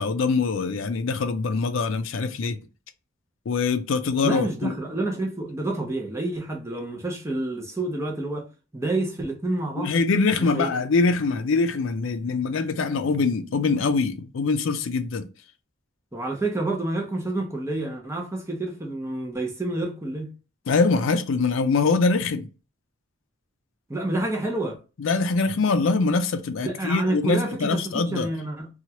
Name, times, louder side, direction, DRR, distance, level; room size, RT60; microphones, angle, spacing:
voice 1, 0.0-2.6 3.5-4.7 9.8-15.3 20.7-22.5 25.0-28.3, left 4 dB, 80° left, 0.4 m, -23 dB
voice 2, 4.2-8.5 8.7-9.9 10.4-10.7 16.1-20.3 23.9-24.8 26.6-28.7, right 2 dB, 15° right, 0.6 m, -28 dB
2.9 x 2.3 x 2.8 m
head